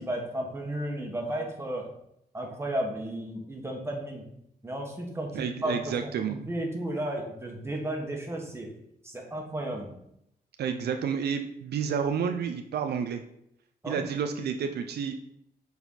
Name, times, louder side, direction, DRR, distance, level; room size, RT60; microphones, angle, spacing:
voice 1, 0.0-1.9 2.3-4.2 4.6-8.7 9.0-9.9 13.8-14.0, right 1 dB, 15° right, 0 dB, 1.6 m, -33 dB
voice 2, 5.3-6.4 10.6-13.2 13.9-15.1, right 7 dB, 80° right, 6 dB, 0.5 m, -30 dB
6.9 x 4.1 x 4.0 m, 0.76 s
cardioid pair, 90°, 17 cm